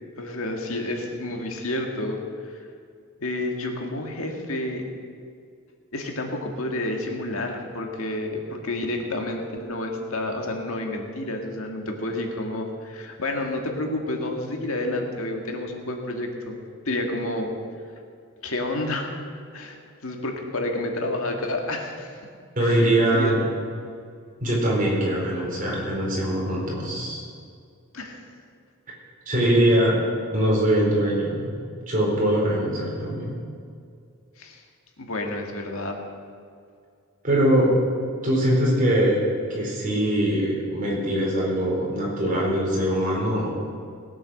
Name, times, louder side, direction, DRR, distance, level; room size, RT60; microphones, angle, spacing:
voice 1, 0.2-2.7 3.2-4.9 5.9-16.6 16.9-17.5 18.4-19.1 19.5-22.2 22.6-23.4 27.9-28.2 34.4-34.6 35.0-36.0, left 1 dB, 70° left, 3 dB, 1.8 m, -30 dB
voice 2, 22.6-23.4 24.4-27.2 29.3-30.0 30.3-31.5 31.9-33.4 37.2-37.7 38.2-39.2 39.5-43.5, right 1 dB, 40° right, -4 dB, 4.4 m, -22 dB
18.5 x 8.8 x 6.5 m, 2.3 s
head